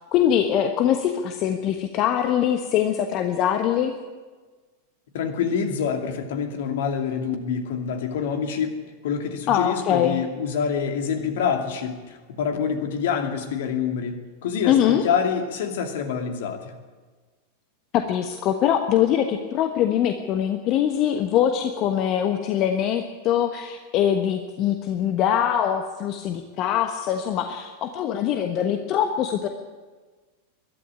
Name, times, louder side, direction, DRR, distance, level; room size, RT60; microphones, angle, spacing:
voice 1, 0.1-3.9 9.5-10.2 14.7-15.0 17.9-29.5, left 10 dB, 35° left, 6 dB, 1.3 m, -23 dB
voice 2, 5.1-8.8 9.0-16.7, left 7 dB, 55° left, 5 dB, 2.6 m, -26 dB
22.0 x 12.5 x 10.0 m, 1.4 s
figure-of-eight pair, 90°, 0 cm